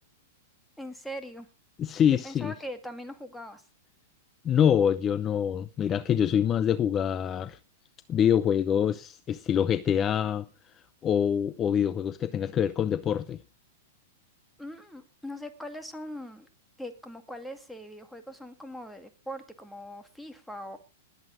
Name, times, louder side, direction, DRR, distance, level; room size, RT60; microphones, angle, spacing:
voice 1, 0.8-1.5 2.2-3.6 14.6-16.5 16.8-20.8, equal, ahead, 2.1 m, -41 dB
voice 2, 1.8-2.5 4.4-7.6 8.1-10.5 10.7-13.4, left 9 dB, 25° left, 0.6 m, -25 dB
19.5 x 8.2 x 5.1 m
hypercardioid pair, 125°, 0 cm